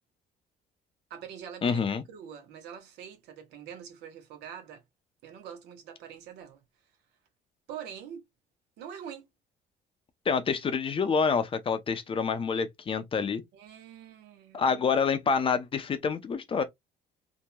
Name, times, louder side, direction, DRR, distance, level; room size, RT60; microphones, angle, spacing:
voice 1, 1.1-1.8 2.1-4.8 5.2-6.6 7.7-8.2 8.8-9.3 13.5-14.9 16.6-16.7, right 8 dB, 85° right, 1.0 m, -44 dB
voice 2, 1.6-2.0 10.3-13.4 14.5-16.6, left 5 dB, 30° left, 0.5 m, -27 dB
2.8 x 2.6 x 2.2 m
cardioid pair, 110°, 17 cm